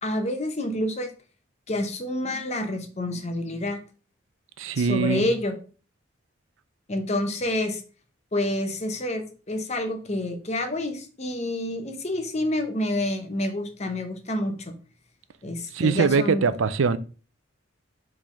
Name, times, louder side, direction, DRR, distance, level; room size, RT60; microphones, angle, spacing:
voice 1, 0.0-1.1 1.7-3.8 4.8-5.5 6.9-7.8 8.3-14.8 15.4-16.5, left 1 dB, 35° left, 0.9 m, -28 dB
voice 2, 4.6-5.3 15.7-17.0, right 5 dB, 75° right, 0.5 m, -22 dB
5.3 x 3.5 x 5.1 m
head